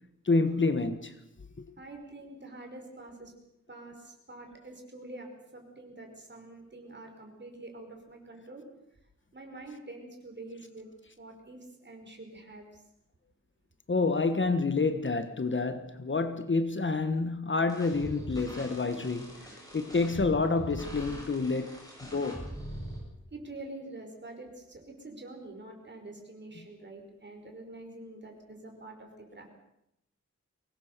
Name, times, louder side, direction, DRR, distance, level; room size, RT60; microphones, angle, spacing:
voice 1, 0.2-1.1 13.9-19.5 19.7-21.8 22.1-22.4, left 3 dB, 40° left, 1.4 m, -28 dB
voice 2, 1.8-3.3 3.7-8.6 9.3-10.9 11.2-12.8 23.3-29.5, right 2 dB, 40° right, 5.2 m, -46 dB
sound 1, 17.7-23.0, right 1 dB, 10° left, 7.7 m, -42 dB
23.5 x 20.0 x 6.8 m
wide cardioid pair, 130°, 29 cm